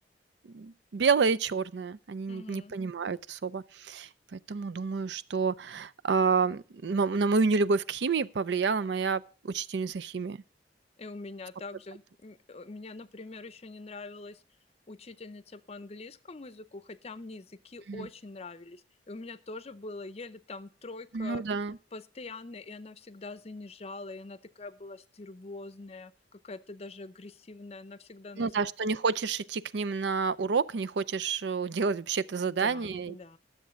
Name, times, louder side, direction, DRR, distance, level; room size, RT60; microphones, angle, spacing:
voice 1, 0.5-10.4 17.9-18.1 21.1-21.8 28.4-33.1, right 4 dB, 70° right, 0.5 m, -29 dB
voice 2, 2.3-2.7 11.0-14.4 14.9-21.4 21.9-28.5 32.4-33.4, left 3 dB, 35° left, 0.6 m, -44 dB
12.5 x 7.3 x 5.1 m
head